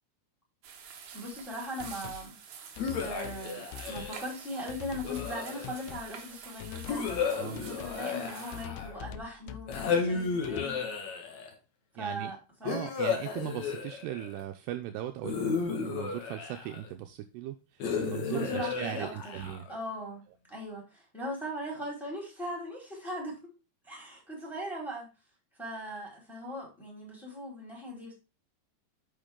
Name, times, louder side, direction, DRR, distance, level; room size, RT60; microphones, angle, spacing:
sound 1, 0.6-8.6, right 7 dB, 65° right, 2.0 m, -48 dB
voice 1, 1.1-10.8 12.0-12.8 18.3-19.3 19.7-23.4 23.8-25.1 25.6-28.1, equal, ahead, -1 dB, 3.9 m, -39 dB
sound 2, 1.8-2.3 2.8-3.4 3.7-4.2 4.7-5.4 5.6-6.1 6.6-7.3 7.6-8.0 8.5-10.0 10.4-10.7, left 12 dB, 80° left, 2.4 m, -44 dB
sound 3, 2.8-4.3 5.0-6.0 6.9-9.1 9.7-11.5 12.7-14.4 15.2-16.9 17.8-19.8, left 5 dB, 55° left, 2.2 m, -33 dB
voice 2, 7.3-7.7 12.0-12.3 12.6-19.7, right 12 dB, 80° right, 6 dB, 2.6 m, -38 dB
8.9 x 6.9 x 3.7 m, 0.29 s
omnidirectional pair, 4.9 m